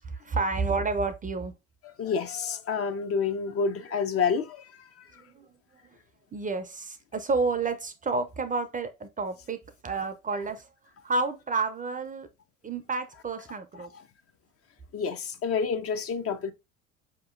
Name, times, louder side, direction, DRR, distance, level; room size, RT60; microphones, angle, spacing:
voice 1, 0.0-1.5 5.1-5.5 6.3-10.7 11.0-12.3 12.6-13.9, right 4 dB, 20° right, 0.5 m, -30 dB
voice 2, 1.8-4.6 14.9-16.5, left 5 dB, 40° left, 0.6 m, -28 dB
4.7 x 2.9 x 2.4 m
hypercardioid pair, 65°, 36 cm